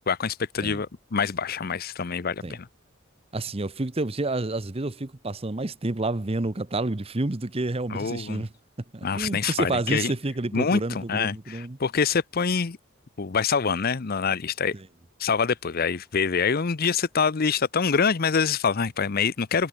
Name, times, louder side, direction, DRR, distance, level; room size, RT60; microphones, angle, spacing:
voice 1, 0.1-2.7 7.9-8.4 9.0-10.1 10.5-12.8 13.2-14.7 15.2-19.7, left 5 dB, 45° left, 0.6 m, -25 dB
voice 2, 3.3-8.5 8.9-11.8 14.7-14.9, right 2 dB, 30° right, 0.8 m, -29 dB
head